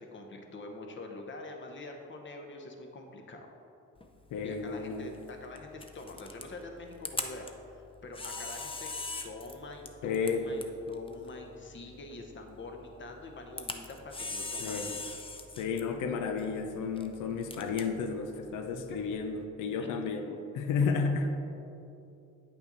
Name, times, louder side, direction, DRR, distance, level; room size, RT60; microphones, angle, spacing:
voice 1, 0.0-3.5 4.4-8.9 9.2-15.0 18.7-19.0, left 2 dB, 40° left, 3 dB, 1.0 m, -45 dB
Camera, 4.0-19.4, left 3 dB, 20° left, 0.6 m, -43 dB
voice 2, 4.3-5.1 10.0-10.5 14.6-14.9 15.6-21.4, left 5 dB, 85° left, 6 dB, 0.7 m, -32 dB
8.7 x 5.7 x 4.0 m, 2.8 s
cardioid pair, 90°, 30 cm